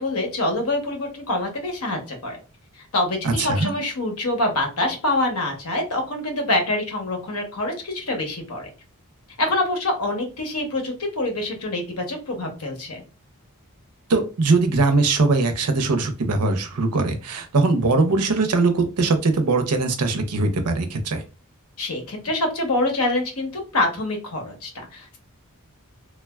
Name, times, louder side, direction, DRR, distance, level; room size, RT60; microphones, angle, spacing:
voice 1, 0.0-2.4 2.7-8.7 9.4-13.0 21.8-25.2, left 1 dB, 70° left, 3 dB, 0.9 m, -25 dB
voice 2, 3.2-3.7 14.1-21.2, right 3 dB, 85° right, 7 dB, 0.6 m, -21 dB
3.2 x 2.2 x 2.2 m, 0.32 s
head